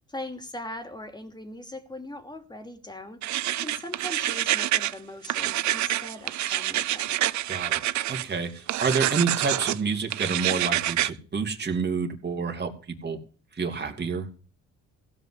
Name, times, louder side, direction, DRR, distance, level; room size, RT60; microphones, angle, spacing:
voice 1, 0.1-3.2 3.6-7.2, left 1 dB, 15° left, 7 dB, 2.8 m, -40 dB
sound 1, 3.2-4.9 5.2-8.2 8.7-9.8 10.1-11.1, right 14 dB, 70° right, 0.7 m, -27 dB
voice 2, 7.5-7.8 8.1-12.7 13.0-13.2 13.5-14.3, right 5 dB, 35° right, 3 dB, 3.0 m, -28 dB
16.0 x 5.4 x 8.3 m, 0.41 s
cardioid pair, 90°, 30 cm